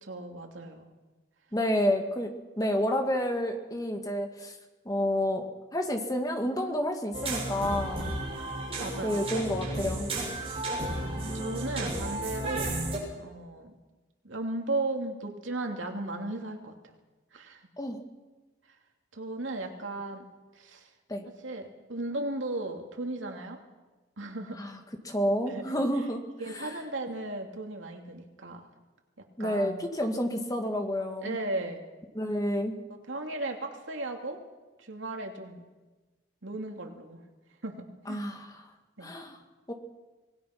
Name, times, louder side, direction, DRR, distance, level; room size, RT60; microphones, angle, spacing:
voice 1, 0.0-0.9 8.8-9.2 10.4-10.6 11.3-12.8 13.1-13.7 14.2-16.7 17.3-17.6 19.1-20.3 20.5-20.9 21.3-23.6 24.2-24.6 25.5-25.7 26.4-28.7 29.2-29.8 31.2-31.9 32.9-34.4 34.8-35.6 36.4-37.2 37.6-38.2 39.0-39.2, right 2 dB, 85° right, 3 dB, 2.8 m, -36 dB
voice 2, 1.5-4.5 4.9-5.5 5.7-8.1 9.0-10.1 17.8-18.0 21.1-21.2 24.6-24.8 25.0-26.2 26.5-26.7 29.4-31.4 32.2-32.8 38.1-38.6 39.0-39.4 39.7-39.8, equal, 20° left, 4 dB, 2.1 m, -29 dB
sound 1, 7.1-13.0, right 1 dB, 30° right, 6.2 m, -33 dB
26.0 x 19.0 x 6.0 m, 1.2 s
head